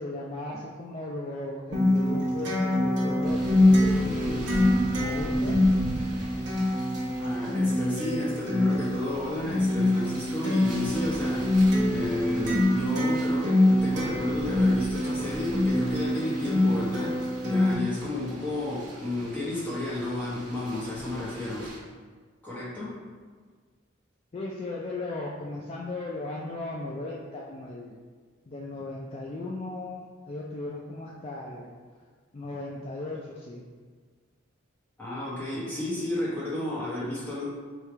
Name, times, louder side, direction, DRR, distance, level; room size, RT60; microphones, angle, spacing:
voice 1, 0.0-4.5 5.0-5.6 24.3-28.0 28.5-31.7 32.3-33.6, left 2 dB, 30° left, -3 dB, 0.4 m, -36 dB
Acoustic guitar, 1.7-17.7, left 1 dB, 60° right, 1.1 m, -25 dB
sound 1, 3.2-21.8, right 1 dB, 40° right, 1.3 m, -41 dB
voice 2, 7.2-11.4 11.8-21.8 22.4-23.0 35.0-37.5, left 1 dB, 10° left, -9 dB, 1.3 m, -32 dB
3.4 x 2.7 x 4.5 m, 1.5 s
head